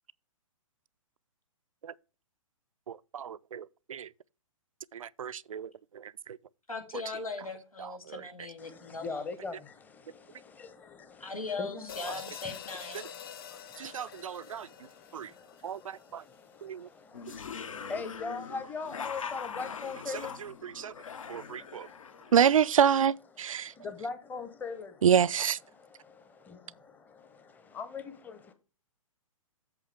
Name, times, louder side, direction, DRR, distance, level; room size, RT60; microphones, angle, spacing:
voice 1, 2.9-4.1 5.2-5.7 5.9-6.1 7.8-8.3 13.8-14.7 15.1-15.3 15.6-16.2 16.6-16.9 20.6-20.9 21.3-21.9 22.3-23.7 25.0-25.6, right 8 dB, 70° right, 0.4 m, -28 dB
voice 2, 6.7-9.3 11.2-13.0, left 3 dB, 85° left, 2.1 m, -39 dB
voice 3, 8.6-11.9 12.4-22.3 23.4-25.1 25.7-28.5, left 4 dB, 10° left, 0.8 m, -43 dB
sound 1, 11.9-16.3, left 8 dB, 40° left, 0.7 m, -46 dB
sound 2, 17.1-22.7, left 6 dB, 65° left, 0.9 m, -42 dB
8.2 x 7.0 x 3.4 m
figure-of-eight pair, 120°, 18 cm